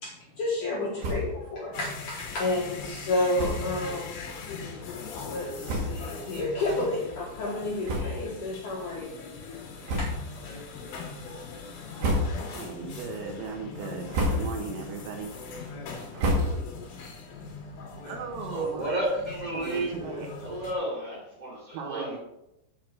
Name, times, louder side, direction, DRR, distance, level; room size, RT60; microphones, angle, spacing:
voice 1, 0.0-4.2 5.3-9.1 10.0-10.1 18.5-18.7, left 2 dB, 75° left, -3 dB, 1.8 m, -30 dB
sound 1, 1.0-1.5 1.8-1.9 2.2-2.3 3.3-3.8 4.5-4.6 5.3-5.4 5.6-6.2 6.7-6.9 7.8-8.5 8.8-9.0 9.8-10.4 10.9-11.3 11.8-12.7 13.1-13.5 13.9-14.7 15.1-16.9, equal, 55° right, 3.4 m, -30 dB
sound 2, 1.7-20.7, left 4 dB, 60° left, 3.0 m, -41 dB
voice 2, 12.5-15.4 18.0-19.2 19.5-20.3 21.7-22.2, right 5 dB, 80° right, 1 dB, 3.7 m, -37 dB
voice 3, 18.5-19.9 20.4-22.1, right 1 dB, 10° right, -5 dB, 2.3 m, -31 dB
8.5 x 6.1 x 6.6 m, 0.86 s
omnidirectional pair, 5.9 m